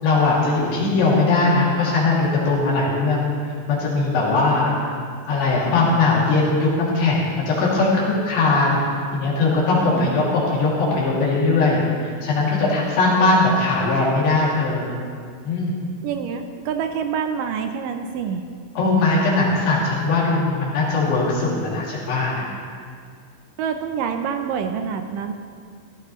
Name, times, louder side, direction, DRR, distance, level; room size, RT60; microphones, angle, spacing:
voice 1, 0.0-3.3 3.7-4.7 5.3-8.8 9.1-14.9 15.4-15.7 18.8-22.5, left 3 dB, 80° left, -6 dB, 4.5 m, -20 dB
voice 2, 9.7-10.2 16.0-18.4 23.6-25.3, right 7 dB, 75° right, 6 dB, 2.2 m, -27 dB
16.5 x 14.0 x 3.1 m, 2.1 s
omnidirectional pair, 4.2 m